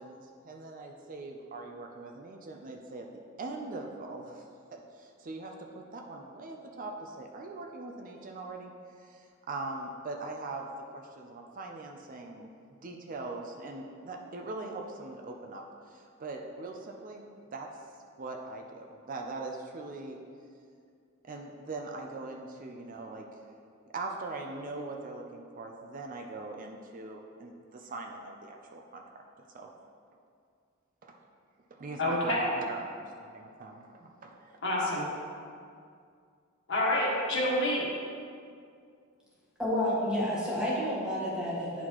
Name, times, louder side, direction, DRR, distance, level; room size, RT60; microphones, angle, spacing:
voice 1, 0.0-3.1 3.4-4.4 4.7-8.7 9.0-10.7 10.9-12.5 12.8-17.2 17.5-17.7 18.2-20.2 21.2-23.4 23.9-29.0 29.5-29.7 31.0-31.2 31.7-34.6, right 3 dB, 40° right, 2 dB, 0.5 m, -41 dB
voice 2, 32.0-32.5 34.6-35.0 36.7-37.9, left 1 dB, 60° left, -5 dB, 1.6 m, -28 dB
voice 3, 39.6-41.9, equal, 5° right, -7 dB, 1.3 m, -30 dB
9.5 x 4.1 x 3.0 m, 2.2 s
head